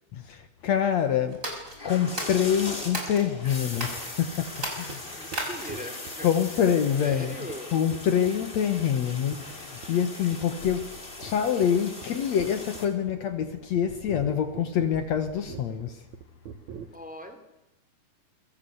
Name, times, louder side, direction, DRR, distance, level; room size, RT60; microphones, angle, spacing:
voice 1, 0.1-1.4 1.8-5.3 6.2-7.4 7.7-10.9 11.2-16.1, left 8 dB, 65° left, 2.5 m, -26 dB
sound 1, 1.3-3.3 3.7-4.1 4.5-5.9, right 1 dB, 25° right, 6.5 m, -35 dB
sound 2, 1.7-12.9, left 2 dB, 15° left, 3.3 m, -40 dB
sound 3, 3.9-4.0 4.2-4.5 4.9-5.0 5.3-5.4 5.7-6.3 6.7-6.8 7.1-7.2 7.5-7.6 7.9-8.5 8.8-9.0 9.3-9.6 9.8-10.1 10.3-10.5 10.8-16.9, right 8 dB, 70° right, 2.6 m, -42 dB
voice 2, 5.1-6.3 7.0-7.7 16.9-17.4, left 1 dB, 5° right, 3.7 m, -39 dB
27.5 x 22.5 x 8.1 m
omnidirectional pair, 3.6 m